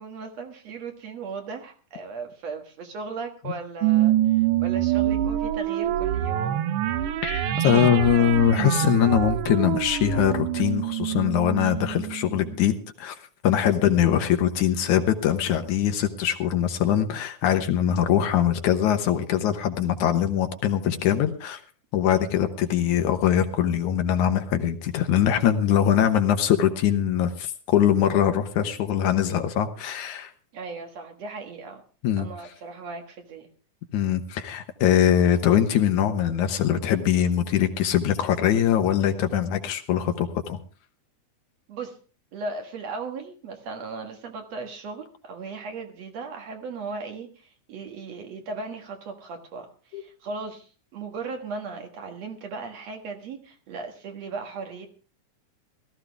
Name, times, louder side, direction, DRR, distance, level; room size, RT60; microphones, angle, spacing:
voice 1, 0.0-6.7 14.2-14.4 30.5-31.8 32.2-33.5 41.7-41.9 42.3-54.9, right 4 dB, 60° right, 4 dB, 2.6 m, -37 dB
sound 1, 3.8-12.6, right 12 dB, 85° right, 1.3 m, -25 dB
voice 2, 7.2-13.2 13.4-21.6 21.9-30.3 32.0-32.3 33.9-40.6 49.9-50.0, left 9 dB, 75° left, 7 dB, 2.4 m, -22 dB
17.5 x 13.5 x 3.5 m, 0.36 s
omnidirectional pair, 3.6 m